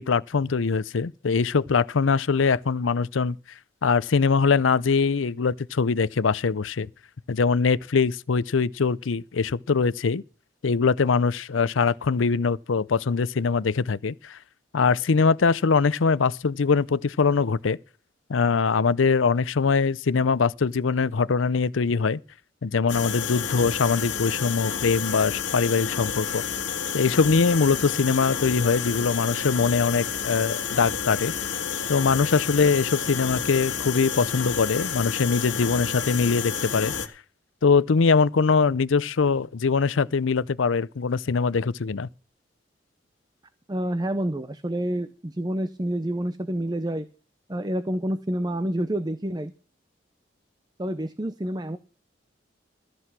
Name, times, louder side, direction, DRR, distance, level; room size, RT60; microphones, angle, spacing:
voice 1, 0.0-3.4 3.8-6.9 7.3-10.2 10.6-14.4 14.7-17.8 18.3-22.2 22.6-26.4 26.9-31.3 31.9-36.9 37.6-42.1, left 5 dB, 90° left, 0.6 m, -22 dB
sound 1, 22.9-37.1, left 7 dB, 70° left, 1.6 m, -30 dB
voice 2, 43.7-47.1 47.5-49.5 50.8-51.8, right 1 dB, 20° right, 0.6 m, -28 dB
14.5 x 7.9 x 6.0 m
head